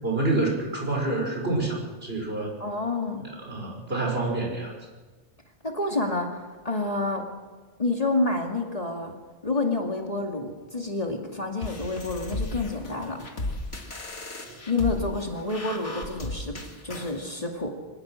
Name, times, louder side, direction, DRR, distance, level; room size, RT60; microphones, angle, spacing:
voice 1, 0.0-2.6 3.4-4.7, right 2 dB, 55° right, -1 dB, 6.1 m, -27 dB
voice 2, 2.6-3.2 5.6-7.2 7.8-9.2 9.4-13.2 14.7-16.5 16.8-17.7, left 3 dB, 30° left, 1 dB, 2.3 m, -28 dB
sound 1, 11.6-17.2, left 2 dB, 70° left, 2.6 m, -35 dB
25.5 x 19.0 x 6.3 m, 1.3 s
omnidirectional pair, 1.2 m